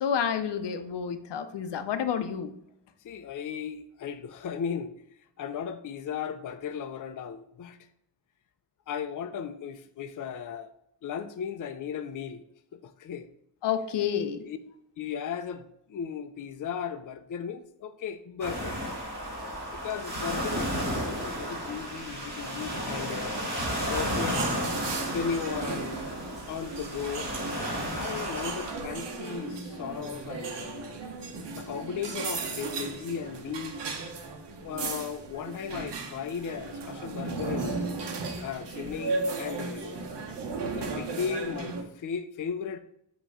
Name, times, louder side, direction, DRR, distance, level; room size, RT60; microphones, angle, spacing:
voice 1, 0.0-2.5 13.6-14.4, left 8 dB, 85° left, 0.7 m, -29 dB
voice 2, 3.0-4.9 5.4-7.8 8.9-10.7 11.0-12.4 12.7-13.3 14.4-14.6 15.0-18.8 19.7-23.4 23.9-24.4 25.0-26.0 26.5-27.3 28.0-31.0 31.5-33.8 34.6-37.8 38.4-40.0 40.7-42.8, left 7 dB, 50° left, 0.5 m, -36 dB
sound 1, 18.4-28.7, equal, 25° right, 2.3 m, -33 dB
sound 2, 24.0-41.8, right 3 dB, 90° right, 1.1 m, -36 dB
7.6 x 3.0 x 4.8 m
wide cardioid pair, 125°, 40 cm